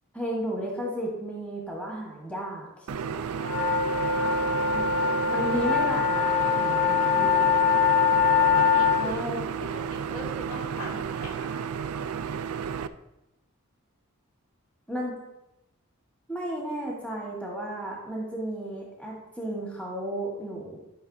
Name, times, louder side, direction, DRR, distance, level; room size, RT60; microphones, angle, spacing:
voice 1, 0.1-3.4 4.7-4.9 5.3-7.5 8.7-9.4 14.9-15.2 16.3-20.8, right 1 dB, 5° left, -3 dB, 1.4 m, -34 dB
sound 1, 2.9-12.9, right 7 dB, 90° right, 0.4 m, -32 dB
sound 2, 3.4-9.0, left 7 dB, 55° left, 2.4 m, -23 dB
voice 2, 4.1-5.3 7.0-7.4 8.7-9.2 9.5-11.6, left 1 dB, 70° left, -3 dB, 2.4 m, -41 dB
11.5 x 5.3 x 2.7 m, 0.92 s
head